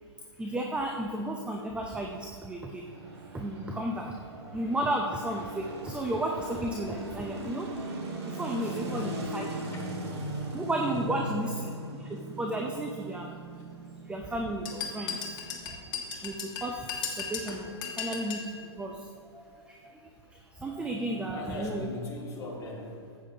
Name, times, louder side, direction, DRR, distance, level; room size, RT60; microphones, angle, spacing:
voice 1, 0.4-2.9 3.3-9.5 10.5-11.5 11.9-13.3 14.0-15.4 15.7-21.9, right 1 dB, 5° right, 1 dB, 0.6 m, -34 dB
sound 1, 2.8-17.1, right 2 dB, 70° right, 2.0 m, -39 dB
voice 2, 8.6-10.5 10.8-11.6 15.9-16.0 19.9-20.0 21.2-23.1, left 2 dB, 20° left, -3 dB, 2.2 m, -41 dB
sound 2, 14.7-18.5, left 6 dB, 50° left, 1.6 m, -36 dB
13.0 x 8.4 x 2.8 m, 2.3 s
hypercardioid pair, 120°, 15 cm